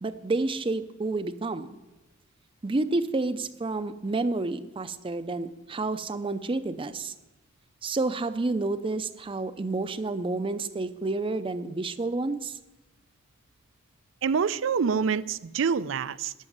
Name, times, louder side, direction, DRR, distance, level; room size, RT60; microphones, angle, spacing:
voice 1, 0.0-1.7 2.6-7.1 7.8-12.5, right 3 dB, 25° right, 12 dB, 0.5 m, -29 dB
voice 2, 14.2-16.3, right 6 dB, 75° right, 18 dB, 0.4 m, -26 dB
13.0 x 6.4 x 9.4 m, 1.0 s
head